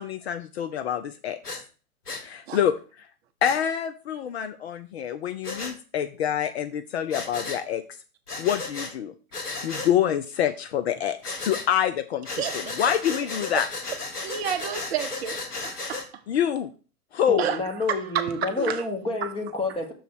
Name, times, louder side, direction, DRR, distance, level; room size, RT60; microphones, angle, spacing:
voice 1, 0.0-1.6 2.2-3.1 3.4-7.8 8.4-9.1 9.6-13.7 16.3-16.7 17.1-17.4, left 9 dB, 45° left, 0.5 m, -26 dB
Breathing, 1.4-1.6 2.1-2.2 3.4-3.6 5.4-5.7 7.1-7.6 8.3-8.9 9.3-9.9 11.2-11.7 12.2-16.1, left 3 dB, 80° left, 1.5 m, -34 dB
voice 2, 12.3-12.8 14.2-16.1 17.4-17.6 17.9-18.8 19.2-19.3, right 9 dB, 45° right, 0.7 m, -30 dB
voice 3, 17.3-19.9, left 2 dB, 10° left, 1.4 m, -29 dB
6.4 x 3.9 x 6.2 m
figure-of-eight pair, 110°, 45 cm